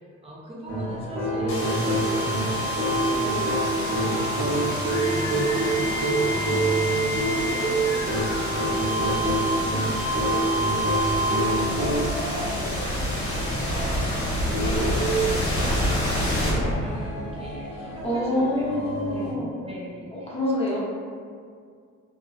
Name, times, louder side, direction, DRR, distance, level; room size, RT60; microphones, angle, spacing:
voice 1, 0.2-15.0 15.3-18.5 19.1-20.3 20.7-20.8, right 1 dB, 20° right, -4 dB, 0.6 m, -38 dB
sound 1, 0.7-19.3, equal, 85° left, 0.6 m, -36 dB
sound 2, 0.7-12.3 14.5-15.4, right 2 dB, 85° right, 0.8 m, -26 dB
sound 3, 1.5-17.3, equal, 50° left, 1.0 m, -27 dB
voice 2, 14.6-15.1 17.7-19.5 20.1-20.8, left 1 dB, 20° left, -7 dB, 0.7 m, -27 dB
2.3 x 2.3 x 2.3 m, 2.1 s
cardioid pair, 90°, 30 cm